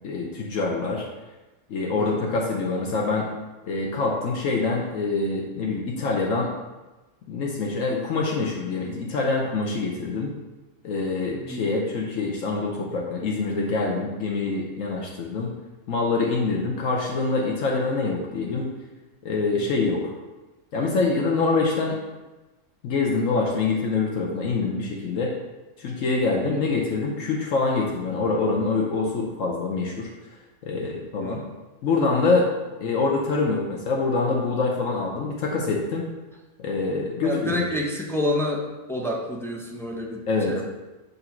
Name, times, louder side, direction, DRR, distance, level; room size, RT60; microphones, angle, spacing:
voice 1, 0.0-1.1 1.7-3.3 3.6-6.5 7.3-10.3 10.8-15.5 15.9-18.7 19.2-20.1 20.7-22.0 22.8-25.3 25.8-30.1 30.6-31.4 31.8-32.5 32.8-36.1 36.6-37.6 40.3-40.6, left 3 dB, 75° left, -1 dB, 1.1 m, -25 dB
voice 2, 11.3-11.7 26.5-26.7 31.2-31.5 37.2-38.6 38.9-40.6, left 1 dB, 5° left, -2 dB, 0.4 m, -29 dB
6.9 x 2.7 x 5.8 m, 1.1 s
omnidirectional pair, 1.4 m